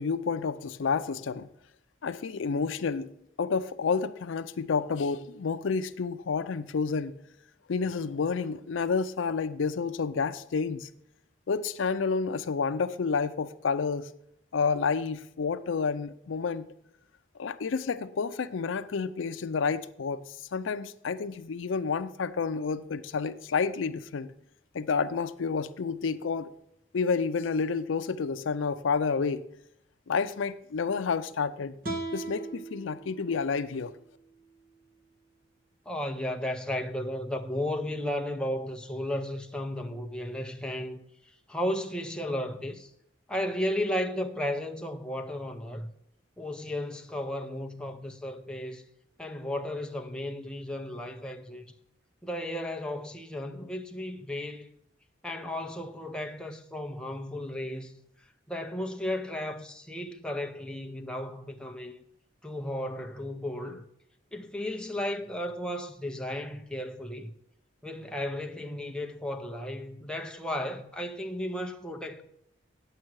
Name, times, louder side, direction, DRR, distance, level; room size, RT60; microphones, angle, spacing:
voice 1, 0.0-1.5 2.0-3.1 3.4-7.1 7.7-10.9 11.5-14.1 14.5-16.7 17.4-24.3 24.7-26.5 26.9-29.5 30.1-31.8 32.1-33.9, left 5 dB, 85° left, 0.5 m, -30 dB
sound 1, 31.8-35.0, right 3 dB, 50° right, 1.3 m, -40 dB
voice 2, 35.9-41.0 41.5-42.9 43.3-45.9 46.4-48.8 49.2-51.7 52.2-54.7 55.2-57.9 58.5-62.0 62.4-63.8 64.3-67.3 67.8-72.2, left 1 dB, 5° left, 0.6 m, -34 dB
9.5 x 7.6 x 4.6 m
head